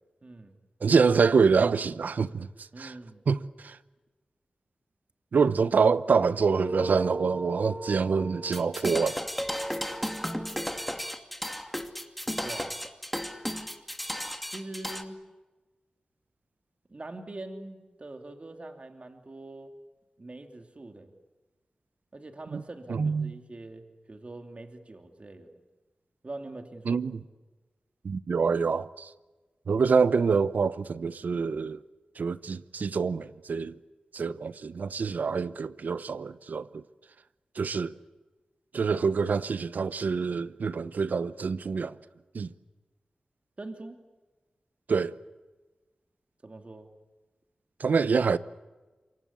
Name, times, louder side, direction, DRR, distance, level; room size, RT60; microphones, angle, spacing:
voice 1, 0.2-0.5 2.7-3.2 12.4-12.8 14.5-15.2 16.9-19.7 20.2-21.1 22.1-25.6 26.2-27.0 43.6-44.0 46.4-46.9, right 2 dB, 50° right, 2.9 m, -43 dB
voice 2, 0.8-2.9 3.3-3.8 5.3-9.2 22.5-22.6 22.9-23.3 26.9-27.2 28.0-29.1 29.7-31.8 32.2-33.8 34.1-36.8 37.5-37.9 38.7-42.0 42.3-42.5 44.9-45.2 47.8-48.4, right 5 dB, 80° right, 0.8 m, -26 dB
sound 1, 6.4-11.2, right 1 dB, 20° right, 1.5 m, -39 dB
sound 2, 8.5-15.0, equal, 5° left, 2.6 m, -34 dB
27.5 x 24.5 x 8.5 m
cardioid pair, 45°, 3 cm